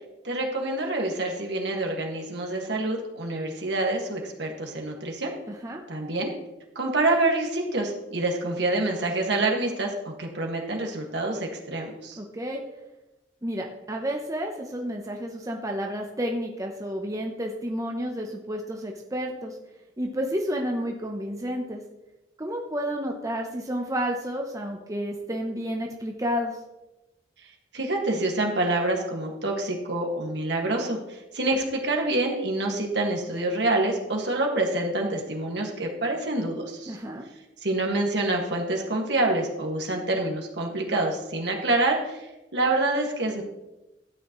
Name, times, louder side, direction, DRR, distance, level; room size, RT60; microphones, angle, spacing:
voice 1, 0.2-5.3 5.9-6.3 6.8-12.2 27.7-37.0 37.6-43.4, right 2 dB, 65° right, 1 dB, 1.9 m, -27 dB
voice 2, 5.5-5.8 12.2-12.6 13.4-19.6 20.0-21.8 22.4-26.6 36.9-37.3, equal, 20° right, 1 dB, 0.8 m, -31 dB
12.5 x 9.1 x 3.1 m, 1.0 s
head